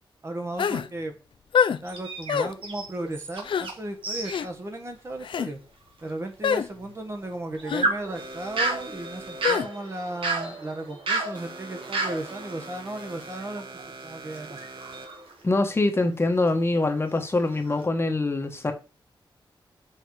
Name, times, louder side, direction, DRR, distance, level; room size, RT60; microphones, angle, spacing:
voice 1, 0.2-1.2 1.8-5.6 6.0-14.7, right 1 dB, 30° right, 1.3 m, -35 dB
sound 1, 0.6-0.9 1.5-1.8 2.3-2.5 3.4-3.7 4.3-4.5 5.2-5.5 6.4-6.7 7.7-7.9 9.4-9.7, left 7 dB, 75° left, 0.5 m, -24 dB
sound 2, 1.9-3.8 4.0-4.4 4.8-4.9 5.6-5.7 7.2-13.9 14.3-15.8 16.4-16.6 17.1-17.9, right 3 dB, 90° right, 1.9 m, -32 dB
sound 3, 8.1-15.3, right 2 dB, 70° right, 1.6 m, -43 dB
voice 2, 15.4-18.7, left 2 dB, 30° left, 1.2 m, -24 dB
6.4 x 6.2 x 4.8 m
wide cardioid pair, 135°, 9 cm